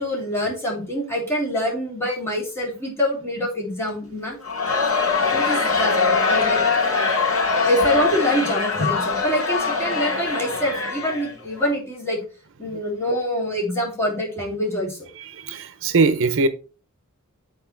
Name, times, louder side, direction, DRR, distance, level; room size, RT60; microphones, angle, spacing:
voice 1, 0.0-4.4 5.3-6.6 7.6-12.2 12.6-15.1, equal, 10° left, 3.4 m, -25 dB
Crowd, 4.4-11.7, left 4 dB, 70° left, 2.7 m, -22 dB
voice 2, 15.3-16.5, right 3 dB, 60° right, 0.7 m, -20 dB
8.0 x 4.4 x 4.5 m
head